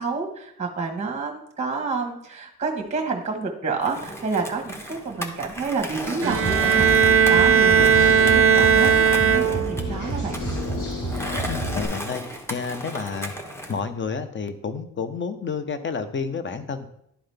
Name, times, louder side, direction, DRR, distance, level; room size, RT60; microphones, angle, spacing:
voice 1, 0.0-10.4, right 4 dB, 20° right, 2 dB, 1.3 m, -29 dB
Skateboard, 3.8-13.8, equal, 10° left, 1.0 m, -35 dB
Bowed string instrument, 6.2-9.9, right 7 dB, 40° right, 0.4 m, -17 dB
sound 1, 6.3-11.9, equal, 70° left, 3.0 m, -29 dB
voice 2, 7.8-8.2 11.5-12.2 12.5-13.3 13.7-16.9, left 5 dB, 35° left, 10 dB, 0.7 m, -30 dB
11.5 x 3.9 x 3.4 m, 0.74 s
cardioid pair, 90°, 33 cm